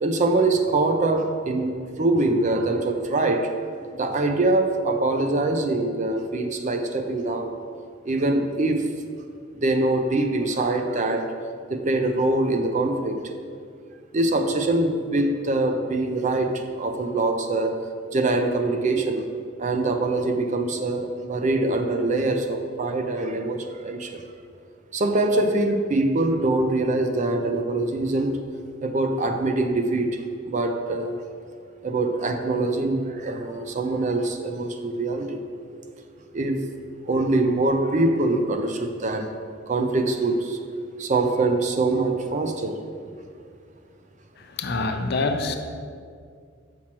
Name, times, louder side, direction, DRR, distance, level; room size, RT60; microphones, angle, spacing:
voice 1, 0.0-3.6 3.9-7.5 8.1-8.9 9.5-11.3 11.7-13.2 14.1-17.8 18.1-19.3 19.6-24.2 24.9-28.4 28.8-31.2 31.8-35.4 36.3-36.7 37.0-39.3 39.7-40.6 41.0-42.8, right 2 dB, 35° right, 6 dB, 0.4 m, -24 dB
voice 2, 44.4-45.6, left 3 dB, 55° left, 6 dB, 0.5 m, -26 dB
7.2 x 6.1 x 2.9 m, 2.2 s
head